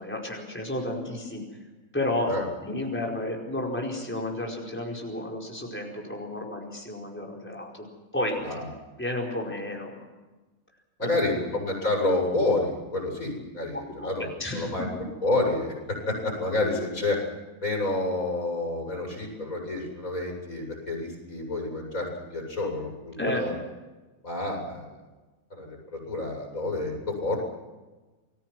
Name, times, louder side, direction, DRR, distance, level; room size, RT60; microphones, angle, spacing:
voice 1, 0.0-1.4 1.9-2.3 2.6-7.8 8.1-8.7 9.0-10.0 11.0-11.4 13.9-14.7 23.2-23.4, left 1 dB, 10° left, -2 dB, 4.8 m, -32 dB
voice 2, 11.0-14.9 15.2-17.2 17.6-23.5 24.2-25.0 25.5-27.4, left 2 dB, 70° left, 0 dB, 8.5 m, -29 dB
29.0 x 21.0 x 6.2 m, 1.2 s
omnidirectional pair, 1.5 m